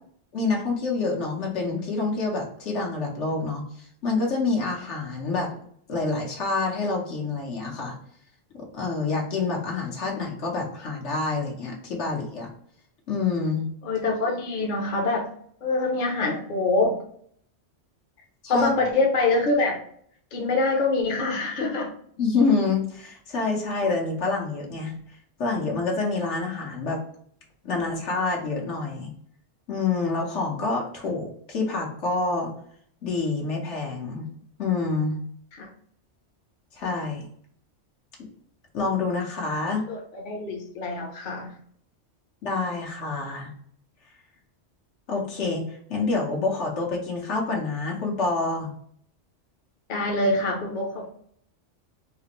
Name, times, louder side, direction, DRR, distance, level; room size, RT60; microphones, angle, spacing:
voice 1, 0.3-3.6 4.0-5.5 5.9-7.9 8.5-12.5 13.1-13.7 18.4-18.7 22.2-24.9 25.4-27.0 27.6-29.1 29.7-32.5 33.0-34.3 34.6-35.2 36.8-37.2 38.7-39.8 42.4-43.5 45.1-48.7, left 3 dB, 80° left, -2 dB, 1.3 m, -27 dB
voice 2, 13.8-15.3 15.6-17.0 18.5-19.8 20.3-21.9 35.5-35.7 39.7-41.5 49.9-51.1, left 3 dB, 50° left, 0 dB, 0.8 m, -25 dB
3.9 x 2.5 x 2.9 m, 0.64 s
omnidirectional pair, 1.2 m